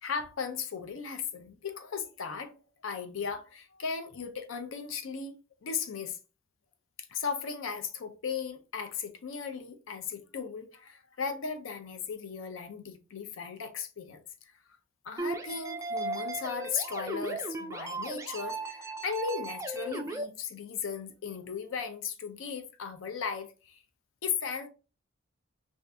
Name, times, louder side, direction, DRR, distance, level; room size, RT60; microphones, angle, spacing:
voice 1, 0.0-2.5 2.8-6.2 7.1-14.2 15.0-23.8 24.2-24.7, left 6 dB, 70° left, 0.5 m, -36 dB
sound 1, 15.2-20.2, right 2 dB, 15° right, 0.3 m, -36 dB
2.6 x 2.5 x 3.3 m
head